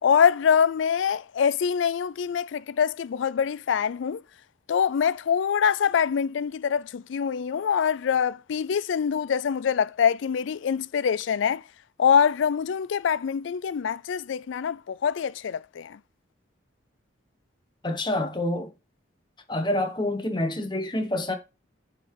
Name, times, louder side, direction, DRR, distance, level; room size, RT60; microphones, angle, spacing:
voice 1, 0.0-4.2 4.7-11.6 12.0-16.0, left 7 dB, 75° left, 0.4 m, -24 dB
voice 2, 17.8-18.7 19.5-21.3, left 1 dB, 25° left, 1.0 m, -27 dB
9.2 x 3.8 x 4.7 m
head